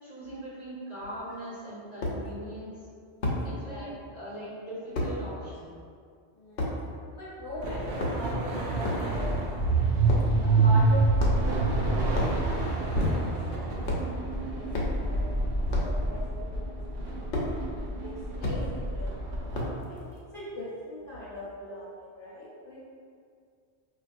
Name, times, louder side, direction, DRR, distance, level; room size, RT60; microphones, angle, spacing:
voice 1, 0.0-2.8 3.4-5.8, right 1 dB, 35° right, -12 dB, 1.6 m, -40 dB
sound 1, 1.0-1.1 2.0-2.2 3.2-3.4 4.9-5.1 6.6-6.7 7.8-8.4 8.8-9.1 10.0-10.3 11.2-11.6 12.1-12.4 12.9-13.4 13.8-14.1 14.7-15.0 15.7-15.9 17.3-17.5 18.4-18.6 19.5-19.8, left 2 dB, 80° left, 1.0 m, -30 dB
voice 2, 3.4-3.9 6.3-6.8 7.1-9.5 9.8-9.9 10.4-17.6 18.0-18.1 18.4-19.4 19.9-22.8, equal, 55° left, -8 dB, 0.9 m, -41 dB
sound 2, 7.6-19.7, right 2 dB, 65° right, 0.8 m, -27 dB
4.8 x 2.2 x 2.5 m, 2.2 s
omnidirectional pair, 1.2 m